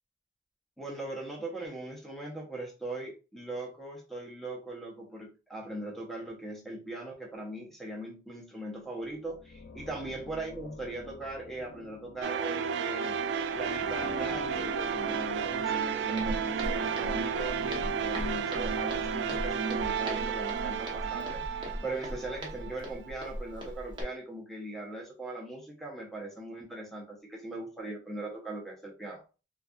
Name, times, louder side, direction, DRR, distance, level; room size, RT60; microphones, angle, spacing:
voice 1, 0.8-13.2 13.5-29.2, right 2 dB, ahead, -2 dB, 0.8 m, -40 dB
sound 1, 9.0-20.1, left 3 dB, 80° left, 0.5 m, -47 dB
sound 2, 12.2-23.1, right 6 dB, 80° right, 0.3 m, -32 dB
Walk footsteps, 16.2-24.0, equal, 25° right, 0.9 m, -39 dB
4.0 x 2.4 x 2.3 m, 0.32 s
head